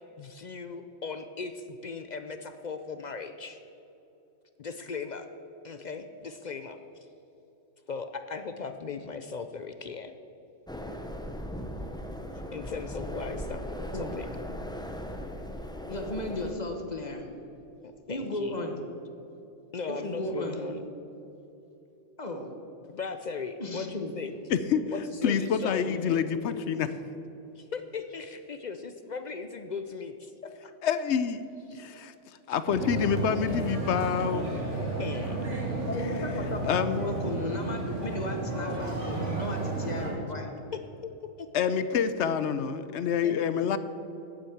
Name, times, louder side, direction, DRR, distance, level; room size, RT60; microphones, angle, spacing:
voice 1, 0.2-3.6 4.6-5.3 5.6-6.8 7.9-10.1 12.5-14.3 17.8-18.6 19.7-20.8 22.9-24.3 24.9-26.3 27.6-30.7 31.7-31.8 32.5-32.6 35.0-35.4 40.7-40.8 41.2-41.5 43.2-43.3, left 5 dB, 55° left, 8 dB, 0.5 m, -38 dB
sound 1, 10.7-16.5, equal, 5° left, 0.5 m, -38 dB
voice 2, 15.9-17.3 18.1-18.8 19.8-20.7 22.2-22.5 23.6-24.1 35.9-40.5, left 1 dB, 35° left, 4 dB, 1.1 m, -35 dB
voice 3, 24.5-24.8 25.2-26.9 30.8-31.4 31.7-32.1 32.5-34.4 36.7-37.0 41.5-43.8, left 7 dB, 70° left, 12 dB, 0.9 m, -27 dB
sound 2, 32.7-40.1, right 2 dB, 70° right, 2.5 m, -32 dB
9.2 x 7.5 x 8.5 m, 2.9 s
omnidirectional pair, 1.3 m